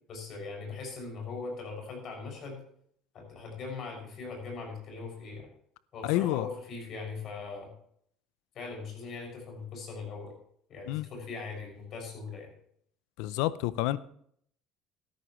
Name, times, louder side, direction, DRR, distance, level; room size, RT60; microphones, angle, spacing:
voice 1, 0.1-2.6 3.1-5.5 5.9-7.7 8.5-10.3 10.7-12.5, left 4 dB, 50° left, 6.5 m, -40 dB
voice 2, 6.0-6.5 10.9-11.1 13.2-14.0, left 15 dB, 80° left, 0.5 m, -29 dB
13.5 x 13.0 x 3.2 m
supercardioid pair, 110°, 0 cm